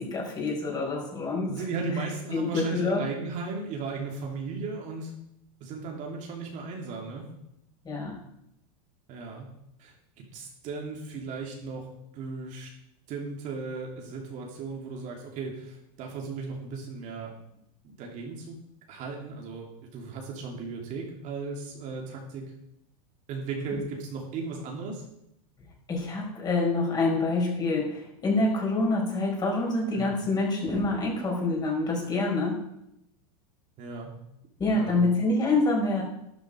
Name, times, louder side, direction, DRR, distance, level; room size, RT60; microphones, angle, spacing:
voice 1, 0.0-1.5 2.3-3.0 7.8-8.2 25.9-32.6 34.6-36.0, left 2 dB, 20° left, -1 dB, 5.0 m, -26 dB
voice 2, 1.5-5.2 5.6-7.3 9.1-9.5 9.8-11.9 12.1-12.7 13.1-17.3 17.8-18.6 18.9-22.4 23.3-25.0 29.9-30.1 33.8-34.1 34.7-35.1, right 4 dB, 40° right, 0 dB, 2.9 m, -36 dB
12.5 x 11.5 x 5.0 m, 0.80 s
supercardioid pair, 135°, 20 cm